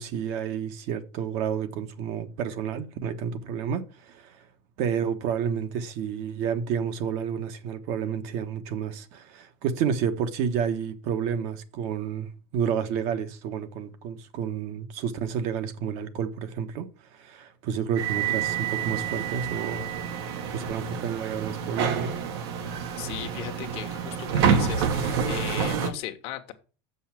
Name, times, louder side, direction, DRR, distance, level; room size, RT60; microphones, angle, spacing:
voice 1, 0.0-4.3 4.8-16.9 17.2-19.9 20.5-22.1, right 7 dB, 55° right, 1.2 m, -30 dB
sound 1, 18.0-25.9, right 7 dB, 80° right, 1.6 m, -28 dB
voice 2, 23.0-26.5, left 12 dB, 50° left, 1.2 m, -37 dB
7.2 x 5.5 x 7.3 m
cardioid pair, 160°, 13 cm